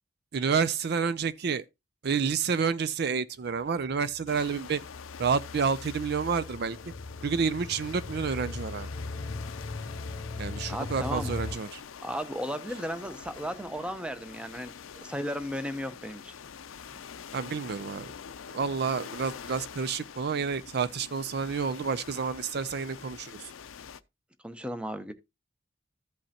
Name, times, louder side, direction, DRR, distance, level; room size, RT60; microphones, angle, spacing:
voice 1, 0.3-1.6 2.0-4.8 5.2-6.8 7.2-8.9 10.4-11.8 17.3-18.1 18.5-23.5, right 5 dB, 55° right, 0.4 m, -29 dB
sound 1, 4.0-11.6, left 3 dB, 30° left, 0.5 m, -39 dB
sound 2, 4.3-24.0, left 7 dB, 90° left, 0.5 m, -45 dB
voice 2, 10.3-11.3 12.0-16.3 24.4-25.1, equal, 5° right, 0.7 m, -35 dB
14.0 x 5.4 x 2.8 m
head